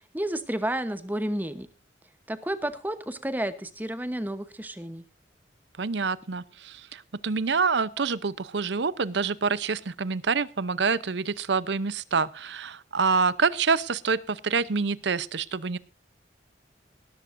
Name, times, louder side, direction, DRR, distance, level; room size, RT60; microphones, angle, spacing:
voice 1, 0.0-1.7 2.3-5.0, right 1 dB, 10° right, 12 dB, 0.9 m, -31 dB
voice 2, 5.8-15.8, right 5 dB, 70° right, 18 dB, 0.7 m, -27 dB
19.0 x 14.0 x 2.6 m, 0.34 s
head